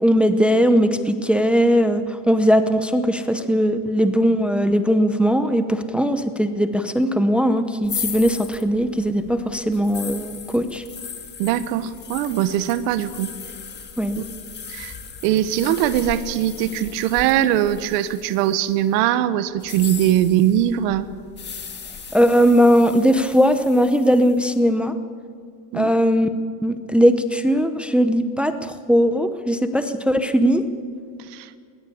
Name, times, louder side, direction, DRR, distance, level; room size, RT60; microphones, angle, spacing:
voice 1, 0.0-10.8 14.0-14.2 22.1-24.9 25.7-26.3 26.6-30.6, equal, ahead, 9 dB, 0.8 m, -19 dB
sound 1, 7.8-18.8 19.5-24.4, left 6 dB, 20° left, 2.0 m, -37 dB
voice 2, 11.4-13.3 14.2-14.3 14.7-15.0 15.2-21.1 25.7-25.9 31.3-31.5, right 11 dB, 85° right, 13 dB, 1.2 m, -21 dB
20.5 x 19.5 x 8.6 m, 2.1 s
cardioid pair, 155°, 46 cm